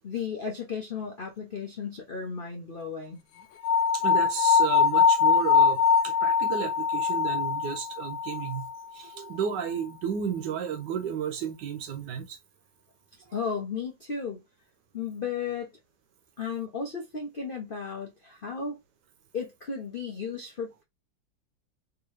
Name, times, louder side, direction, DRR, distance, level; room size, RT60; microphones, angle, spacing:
voice 1, 0.0-3.2 13.3-14.4 14.9-15.7 16.4-18.8 19.3-20.8, left 6 dB, 65° left, 0.5 m, -34 dB
sound 1, 3.6-8.7, left 6 dB, 85° left, 1.4 m, -23 dB
voice 2, 3.9-12.4, right 7 dB, 70° right, 1.2 m, -33 dB
3.6 x 3.0 x 3.1 m
omnidirectional pair, 2.1 m